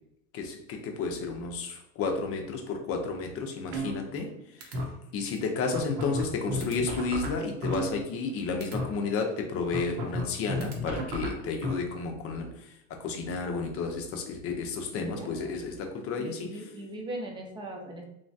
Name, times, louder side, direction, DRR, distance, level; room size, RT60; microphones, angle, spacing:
voice 1, 0.3-4.3 4.6-4.7 5.1-16.5, left 4 dB, 35° left, 3 dB, 0.6 m, -32 dB
sound 1, 3.7-4.3 4.6-4.9 5.4-5.5 5.7-8.3 8.6-8.9 9.7-11.7, equal, 60° right, 0.9 m, -32 dB
voice 2, 15.0-15.6 16.2-18.0, right 1 dB, 10° right, 1 dB, 0.4 m, -39 dB
3.1 x 2.2 x 2.6 m, 0.81 s
hypercardioid pair, 105°, 43 cm